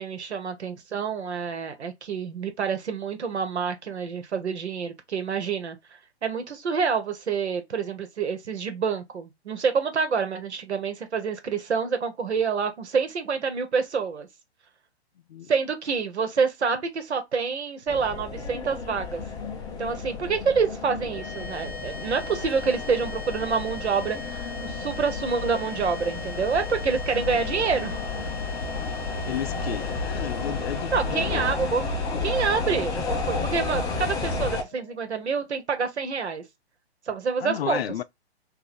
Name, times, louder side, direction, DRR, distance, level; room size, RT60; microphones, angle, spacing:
voice 1, 0.0-5.8 6.2-14.3 15.5-19.2 19.8-28.0 30.9-36.4 37.1-37.8, right 5 dB, 75° right, 1.3 m, -27 dB
sound 1, 17.9-34.6, left 3 dB, 10° left, 0.4 m, -32 dB
sound 2, 21.1-35.5, left 4 dB, 45° left, 0.9 m, -41 dB
voice 2, 29.3-31.5 32.0-32.4 37.4-38.0, left 10 dB, 65° left, 0.5 m, -33 dB
3.4 x 2.6 x 4.1 m
hypercardioid pair, 135°, 33 cm